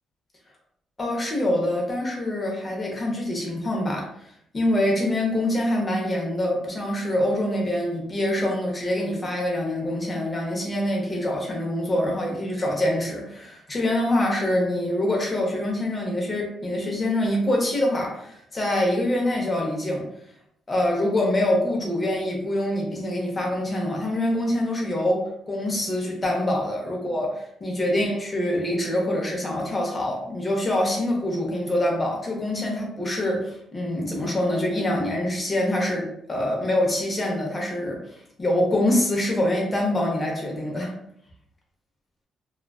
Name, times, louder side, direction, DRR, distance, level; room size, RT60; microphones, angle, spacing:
voice 1, 1.0-4.1 4.5-20.0 20.7-27.3 27.6-38.0 38.4-40.9, left 1 dB, 30° left, -1 dB, 0.8 m, -25 dB
2.3 x 2.3 x 2.3 m, 0.72 s
cardioid pair, 90°, 0 cm